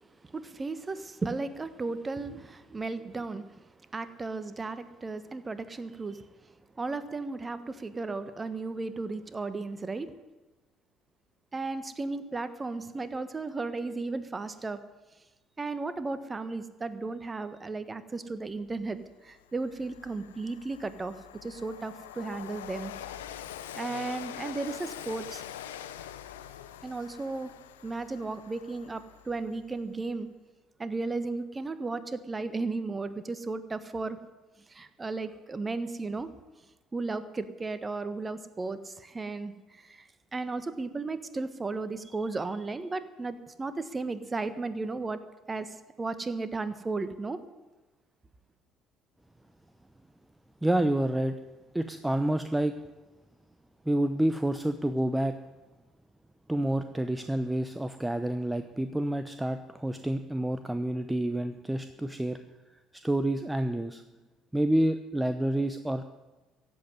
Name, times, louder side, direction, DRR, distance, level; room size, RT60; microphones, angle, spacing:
voice 1, 0.3-3.6 3.9-6.2 6.8-10.1 11.5-14.8 15.6-19.0 19.2-21.1 21.4-22.9 23.7-25.4 26.8-27.5 27.8-30.3 30.8-34.2 34.7-36.3 36.9-45.2 45.5-47.4, right 3 dB, 25° right, 13 dB, 1.3 m, -35 dB
Train, 18.8-18.9 19.3-29.7, left 10 dB, 75° left, 0.8 m, -44 dB
voice 2, 50.6-51.3 51.7-52.7 53.9-55.4 56.5-62.4 63.0-64.0 64.5-66.0, right 1 dB, 10° right, 10 dB, 0.8 m, -28 dB
15.0 x 7.9 x 9.7 m, 1.1 s
figure-of-eight pair, 55°, 0 cm